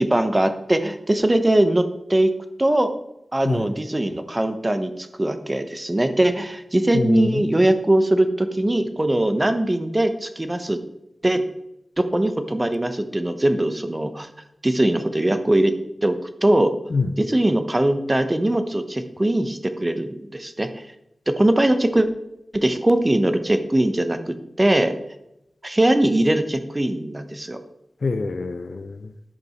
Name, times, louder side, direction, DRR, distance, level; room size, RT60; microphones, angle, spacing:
voice 1, 0.0-2.3 2.6-2.9 3.3-10.8 11.2-11.4 12.0-14.3 14.6-15.7 16.0-16.7 17.2-20.8 21.3-22.1 22.5-24.9 25.6-27.6, right 1 dB, 20° right, 9 dB, 0.9 m, -21 dB
voice 2, 6.9-7.5 16.9-17.1 28.0-29.1, left 3 dB, 60° left, 11 dB, 0.6 m, -25 dB
11.0 x 5.3 x 5.7 m, 0.84 s
wide cardioid pair, 110°, 0 cm